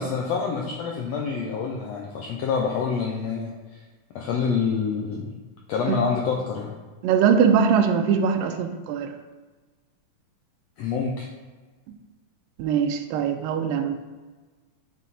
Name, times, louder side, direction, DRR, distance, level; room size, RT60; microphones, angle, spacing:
voice 1, 0.0-3.5 4.1-5.3 5.7-6.7 10.8-11.3, left 5 dB, 90° left, -1 dB, 1.4 m, -27 dB
voice 2, 7.0-9.1 12.6-14.0, right 7 dB, 85° right, 6 dB, 2.3 m, -21 dB
9.3 x 4.2 x 4.1 m, 1.3 s
omnidirectional pair, 3.9 m